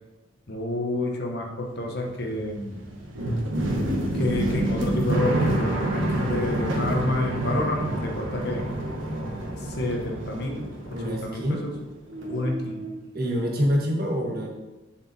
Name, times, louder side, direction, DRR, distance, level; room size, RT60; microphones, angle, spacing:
voice 1, 0.5-2.8 4.1-8.6 9.6-11.7 12.3-12.9, left 2 dB, 55° left, 1 dB, 1.3 m, -29 dB
sound 1, 1.7-11.8 12.1-12.9, right 1 dB, 75° right, 1.5 m, -28 dB
voice 2, 10.9-11.6 13.1-14.5, equal, 50° right, 0 dB, 1.7 m, -26 dB
7.6 x 6.2 x 4.3 m, 1.0 s
head